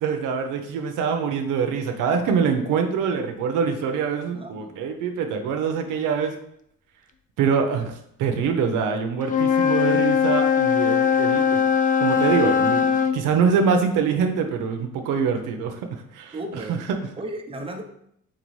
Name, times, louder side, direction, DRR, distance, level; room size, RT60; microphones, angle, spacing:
voice 1, 0.0-6.3 7.4-7.9 8.2-11.6 12.0-16.4 16.7-17.0, right 6 dB, 90° right, 5 dB, 0.6 m, -24 dB
voice 2, 4.3-4.8 16.3-16.8 17.2-17.8, right 1 dB, 20° right, 3 dB, 0.7 m, -34 dB
Wind instrument woodwind instrument, 9.2-13.2, left 7 dB, 30° left, 0.4 m, -20 dB
4.0 x 3.9 x 3.1 m, 0.72 s
cardioid pair, 90°, 30 cm